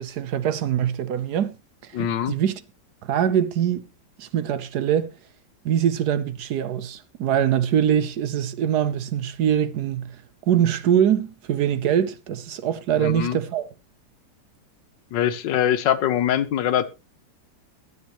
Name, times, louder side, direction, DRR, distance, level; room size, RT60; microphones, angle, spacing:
voice 1, 0.0-1.5 1.8-2.6 3.0-3.8 4.2-5.1 5.6-13.7, right 9 dB, 65° right, 1.2 m, -23 dB
voice 2, 1.9-2.4 13.0-13.4 15.1-16.8, left 10 dB, 80° left, 1.5 m, -23 dB
22.0 x 7.3 x 3.0 m
omnidirectional pair, 2.0 m